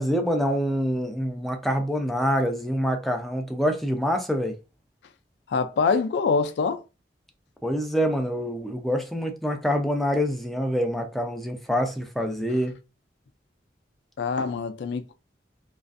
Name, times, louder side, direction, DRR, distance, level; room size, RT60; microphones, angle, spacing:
voice 1, 0.0-4.5 7.6-12.7, equal, ahead, 0.4 m, -26 dB
voice 2, 5.5-6.8 14.2-15.1, left 4 dB, 70° left, 0.3 m, -25 dB
2.4 x 2.3 x 2.5 m
head